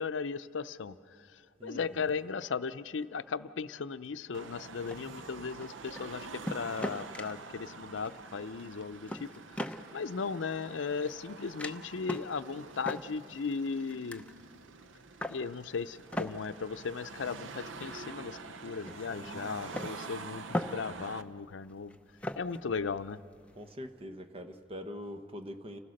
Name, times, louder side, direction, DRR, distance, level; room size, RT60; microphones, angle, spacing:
voice 1, 0.0-9.3 9.6-14.2 15.3-22.0 22.4-23.2, left 5 dB, 80° left, 13 dB, 0.5 m, -37 dB
voice 2, 1.6-2.1 19.1-20.1 23.6-25.8, equal, 30° right, 7 dB, 1.0 m, -44 dB
Car passing by / Traffic noise roadway noise / Engine, 4.3-21.2, right 4 dB, 90° right, 0.7 m, -47 dB
sound 1, 4.8-6.1 6.4-7.5 8.0-8.5 8.8-10.0 10.5-11.3 11.6-11.7 12.1-12.4 12.7-14.4 14.8-15.5 15.9-18.6 18.9-19.0 19.7-21.1 21.4-23.7, equal, 5° left, 0.7 m, -40 dB
29.5 x 15.5 x 6.5 m, 2.2 s
head